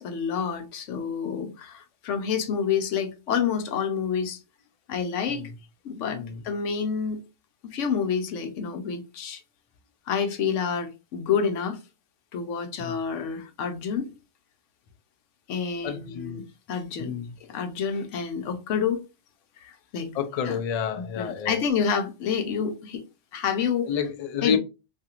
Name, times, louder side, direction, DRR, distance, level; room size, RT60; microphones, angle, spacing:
voice 1, 0.0-4.4 4.9-5.5 5.8-7.2 7.6-9.4 10.1-11.8 12.3-14.1 15.5-16.4 16.7-17.1 17.5-19.0 19.6-20.1 20.5-20.6 21.0-23.0 23.3-23.9 24.4-24.6, left 6 dB, 90° left, 1.0 m, -28 dB
voice 2, 15.8-16.4 17.0-17.3 20.1-21.6 23.8-24.6, left 7 dB, 70° left, 0.3 m, -29 dB
2.6 x 2.4 x 2.8 m
omnidirectional pair, 1.2 m